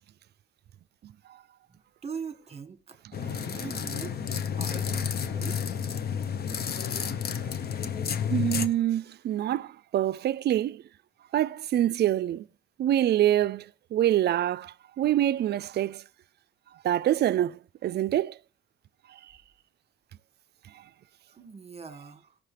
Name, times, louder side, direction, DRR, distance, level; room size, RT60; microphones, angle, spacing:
voice 1, 2.0-3.0 3.5-4.2 4.6-5.7 21.3-22.4, right 5 dB, 30° right, 1.6 m, -41 dB
sound 1, 3.1-8.7, left 7 dB, 50° left, 1.0 m, -31 dB
voice 2, 8.3-10.8 11.3-12.4 12.8-13.6 13.9-16.0 16.8-18.4, right 12 dB, 55° right, 0.4 m, -25 dB
19.0 x 6.3 x 3.3 m
cardioid pair, 90°, 20 cm